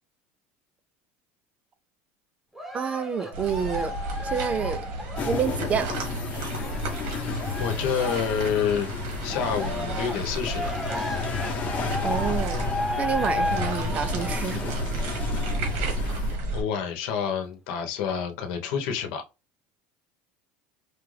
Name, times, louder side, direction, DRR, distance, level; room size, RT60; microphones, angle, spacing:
Cheering, 2.6-8.9 9.3-15.8 16.5-16.6, left 1 dB, 5° right, 0.9 m, -34 dB
voice 1, 2.7-3.9 4.2-4.8 5.2-5.9 12.0-12.7 13.0-14.9, right 7 dB, 25° right, 0.4 m, -28 dB
sound 1, 3.3-16.6, right 2 dB, 75° right, 1.6 m, -32 dB
sound 2, 5.2-16.4, left 6 dB, 35° left, 0.9 m, -34 dB
voice 2, 7.1-8.9 9.2-10.7 15.8-16.2 16.5-19.2, left 7 dB, 70° left, 1.0 m, -29 dB
4.7 x 2.5 x 3.2 m
cardioid pair, 155°, 5 cm